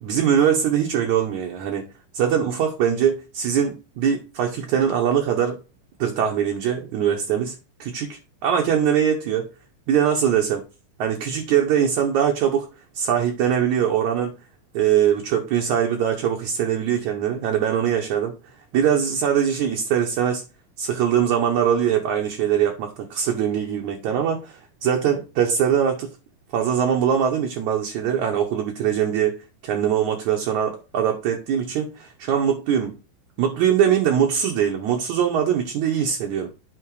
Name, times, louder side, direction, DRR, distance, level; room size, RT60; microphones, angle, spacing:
voice 1, 0.0-1.9 2.1-5.6 6.0-9.5 9.9-10.6 11.0-12.7 13.0-14.3 14.7-18.3 18.7-20.4 20.8-26.1 26.5-29.4 29.6-32.9 33.4-36.5, right 8 dB, 65° right, 2.1 m, -22 dB
8.9 x 3.8 x 4.7 m
omnidirectional pair, 4.1 m